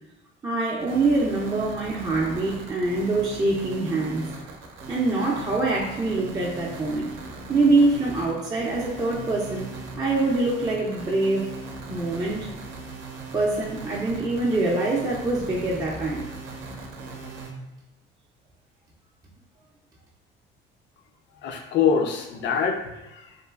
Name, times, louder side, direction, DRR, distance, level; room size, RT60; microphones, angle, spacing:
voice 1, 0.4-4.3 4.9-7.1 7.5-9.7 10.0-11.5 11.9-12.5 13.3-16.3, right 2 dB, 20° right, -4 dB, 0.4 m, -24 dB
sound 1, 0.8-17.5, right 3 dB, 80° right, 0.5 m, -39 dB
voice 2, 21.3-23.4, left 6 dB, 65° left, 3 dB, 0.5 m, -25 dB
3.0 x 2.4 x 2.3 m, 0.95 s
cardioid pair, 100°, 20 cm